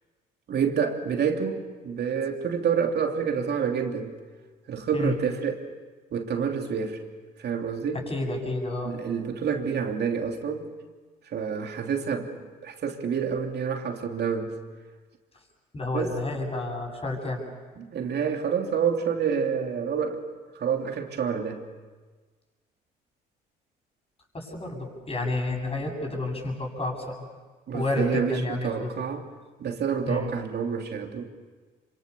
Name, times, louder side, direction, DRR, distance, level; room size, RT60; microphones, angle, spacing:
voice 1, 0.5-4.1 4.7-5.6 6.1-7.0 7.4-8.0 8.8-10.7 11.3-12.3 12.6-14.6 15.9-16.1 17.8-20.2 20.5-21.6 27.7-29.2 29.6-31.3, right 7 dB, 55° right, 3 dB, 3.0 m, -28 dB
voice 2, 8.1-9.0 15.7-17.4 24.3-27.2 27.7-28.9 30.1-30.3, left 2 dB, 30° left, 2 dB, 7.9 m, -30 dB
26.0 x 26.0 x 7.0 m, 1.4 s
hypercardioid pair, 65°, 20 cm